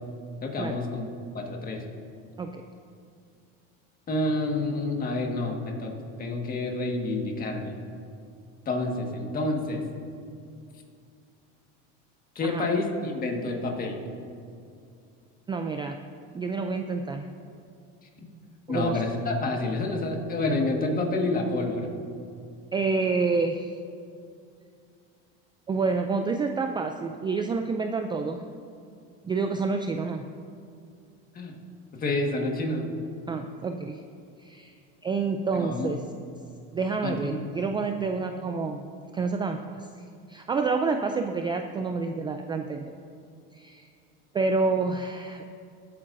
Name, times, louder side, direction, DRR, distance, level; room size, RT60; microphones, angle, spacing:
voice 1, 0.4-1.1 1.3-1.8 4.1-7.7 8.6-9.8 12.3-14.0 18.7-21.9 31.3-31.5 31.9-32.9 35.5-36.0 37.0-37.5, left 2 dB, 30° left, 1 dB, 1.7 m, -28 dB
voice 2, 15.5-16.0 16.3-17.3 18.7-19.0 22.7-23.7 25.7-28.4 29.2-30.2 33.3-34.0 34.4-34.7 35.0-36.0 36.7-38.8 39.1-39.9 40.3-42.9 43.5-43.9 44.3-45.5, right 4 dB, 15° right, 6 dB, 0.3 m, -28 dB
20.5 x 8.5 x 2.6 m, 2.4 s
supercardioid pair, 125°, 29 cm